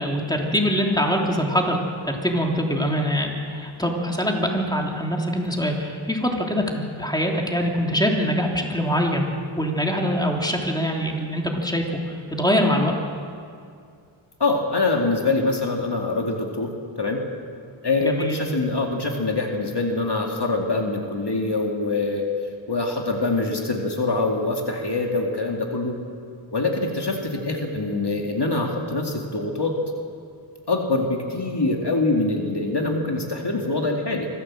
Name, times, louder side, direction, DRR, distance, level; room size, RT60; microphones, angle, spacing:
voice 1, 0.0-1.8 2.0-9.3 9.5-12.9 18.0-18.4, equal, 10° left, 0 dB, 3.1 m, -23 dB
voice 2, 14.4-16.7 17.0-17.2 17.8-22.3 22.7-26.0 26.5-29.8 30.7-34.3, left 3 dB, 55° left, 1 dB, 2.4 m, -24 dB
25.0 x 14.5 x 7.6 m, 2.4 s
wide cardioid pair, 45°, 48 cm